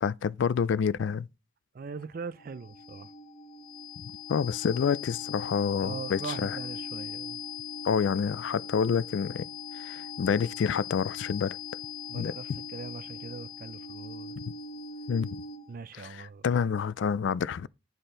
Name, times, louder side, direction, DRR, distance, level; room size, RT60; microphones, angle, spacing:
voice 1, 0.0-1.3 4.0-6.6 7.8-9.4 9.7-11.6 12.1-12.3 15.1-15.4 15.9-17.7, left 6 dB, 65° left, 0.3 m, -28 dB
voice 2, 1.7-3.1 5.8-7.4 12.1-14.3 15.7-16.5, right 5 dB, 45° right, 0.3 m, -41 dB
sound 1, 2.0-15.9, left 5 dB, 50° left, 1.6 m, -40 dB
9.8 x 4.4 x 3.8 m
head